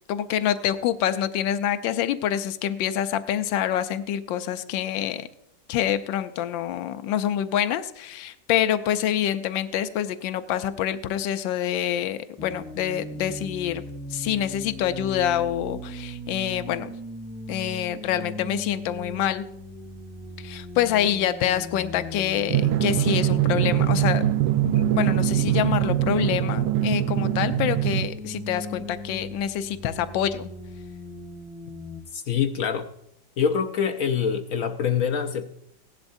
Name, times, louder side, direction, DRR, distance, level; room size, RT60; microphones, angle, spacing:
voice 1, 0.1-5.3 5.7-13.8 14.1-16.9 17.5-19.4 20.4-24.3 24.6-30.5, left 10 dB, 85° left, 11 dB, 1.4 m, -26 dB
sound 1, 12.4-32.0, equal, ahead, 0.4 m, -38 dB
Drum, 22.5-28.1, right 13 dB, 75° right, 1.3 m, -23 dB
voice 2, 32.1-32.9 33.4-35.5, left 7 dB, 65° left, 5 dB, 0.9 m, -25 dB
17.0 x 11.5 x 2.6 m, 0.78 s
omnidirectional pair, 2.0 m